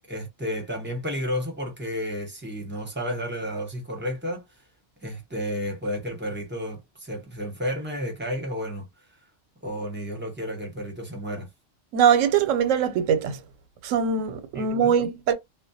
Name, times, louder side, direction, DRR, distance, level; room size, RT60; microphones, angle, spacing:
voice 1, 0.1-4.4 5.0-8.8 9.6-11.5 14.5-14.9, equal, 10° right, 0.7 m, -32 dB
voice 2, 11.9-13.4 13.8-15.3, right 7 dB, 85° right, 0.9 m, -22 dB
2.3 x 2.1 x 2.6 m
omnidirectional pair, 1.3 m